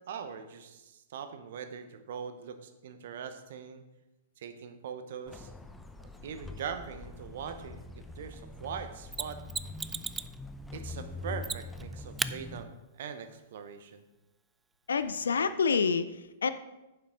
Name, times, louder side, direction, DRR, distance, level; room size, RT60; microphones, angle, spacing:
voice 1, 0.0-3.8 4.4-5.5 6.2-9.4 10.7-14.1, right 7 dB, 60° right, 9 dB, 0.9 m, -42 dB
sound 1, 5.3-12.6, left 2 dB, 5° left, 0.7 m, -44 dB
Mechanisms, 9.1-10.4 11.4-11.8 12.2-12.3 15.1-15.2, right 4 dB, 10° right, 0.3 m, -35 dB
voice 2, 14.9-16.5, left 5 dB, 70° left, 12 dB, 0.4 m, -28 dB
9.7 x 7.3 x 3.8 m, 0.98 s
figure-of-eight pair, 105°, 0 cm